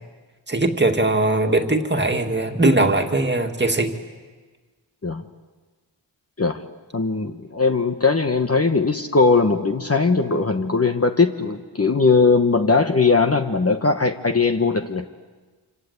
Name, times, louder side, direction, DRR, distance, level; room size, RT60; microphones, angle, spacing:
voice 1, 0.5-3.9, right 2 dB, 25° right, 4 dB, 2.1 m, -20 dB
voice 2, 6.9-15.0, left 4 dB, 30° left, 6 dB, 1.1 m, -19 dB
27.0 x 27.0 x 8.2 m, 1.3 s
wide cardioid pair, 120°, 46 cm